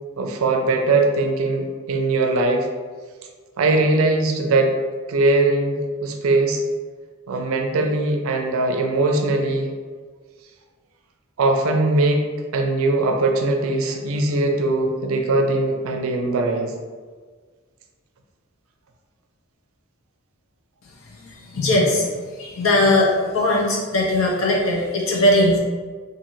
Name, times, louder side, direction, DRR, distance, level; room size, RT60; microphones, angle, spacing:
voice 1, 0.2-2.7 3.6-4.7 5.1-6.6 7.3-9.7 11.4-12.2 12.5-16.7, right 2 dB, 75° right, 3 dB, 0.4 m, -20 dB
voice 2, 21.1-22.1 22.4-25.6, left 1 dB, 70° left, -2 dB, 0.7 m, -19 dB
3.0 x 2.5 x 2.6 m, 1.5 s
head